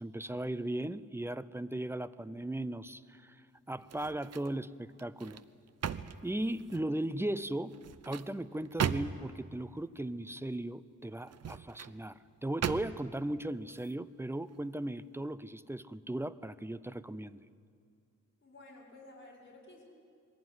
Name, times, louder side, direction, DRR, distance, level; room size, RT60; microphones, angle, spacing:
voice 1, 0.0-3.4 3.7-5.4 6.2-7.8 8.0-17.4, right 1 dB, 10° right, 15 dB, 0.5 m, -37 dB
sound 1, 3.8-4.6 5.0-6.9 7.7-9.4 11.2-12.0 12.6-13.2 13.7-13.9, right 8 dB, 60° right, 0.7 m, -38 dB
voice 2, 18.4-19.8, left 2 dB, 40° left, -4 dB, 5.2 m, -53 dB
21.5 x 16.0 x 9.4 m, 2.3 s
wide cardioid pair, 125°, 30 cm